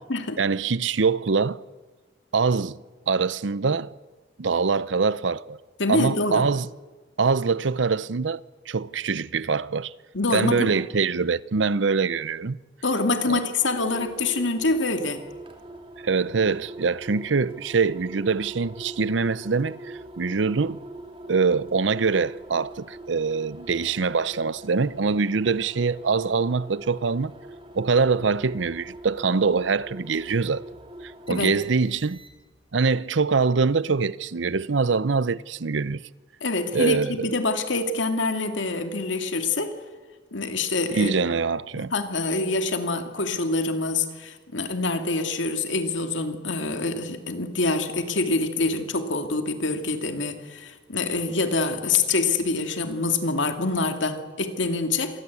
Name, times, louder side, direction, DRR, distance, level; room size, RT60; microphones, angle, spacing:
voice 1, 0.4-1.6 2.3-2.8 3.1-3.9 4.4-5.6 5.9-6.7 7.2-8.4 8.7-9.9 10.3-12.6 13.3-13.4 16.0-20.8 21.3-27.3 27.7-30.6 31.0-32.2 32.7-36.0 36.7-37.3 40.9-41.9, right 4 dB, 80° right, 0.7 m, -24 dB
voice 2, 5.8-6.4 10.1-10.7 12.8-15.2 31.3-31.5 36.4-39.8 40.3-41.1 41.8-55.2, left 3 dB, 85° left, 2.5 m, -26 dB
sound 1, 13.6-32.6, right 1 dB, 30° right, 3.2 m, -43 dB
26.5 x 19.5 x 8.4 m
head